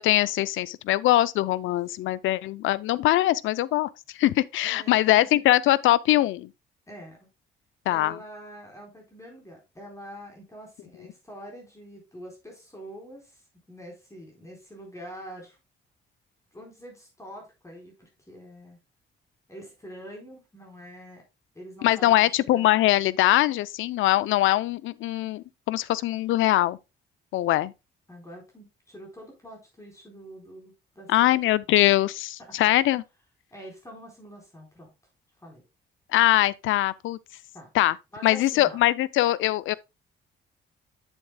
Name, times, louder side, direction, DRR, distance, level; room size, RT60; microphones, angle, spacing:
voice 1, 0.0-6.5 7.9-8.2 21.8-26.8 27.3-27.7 31.1-33.0 36.1-37.2 37.7-38.0 38.2-39.8, left 15 dB, 80° left, 0.5 m, -22 dB
voice 2, 4.6-5.4 6.9-7.3 7.9-15.6 16.5-18.8 19.5-21.2 21.5-22.7 28.1-31.4 32.6-32.7 33.5-34.9 35.4-35.6 37.5-37.7 38.1-38.8, equal, 15° left, 4.2 m, -45 dB
8.6 x 8.1 x 2.2 m
cardioid pair, 90°, 20 cm